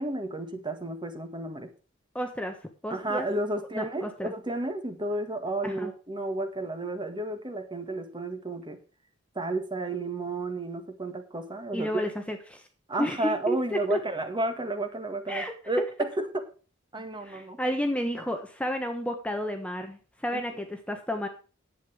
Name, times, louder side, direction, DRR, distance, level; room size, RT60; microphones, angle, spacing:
voice 1, 0.0-1.7 2.9-8.8 9.4-11.9 12.9-16.3 16.9-17.6, right 2 dB, 25° right, 7 dB, 1.7 m, -32 dB
voice 2, 2.1-2.6 2.8-3.3 3.7-4.3 5.6-5.9 11.7-12.7 13.0-14.0 15.3-15.9 17.2-21.3, equal, 5° left, 5 dB, 1.1 m, -31 dB
11.0 x 8.3 x 4.9 m, 0.37 s
head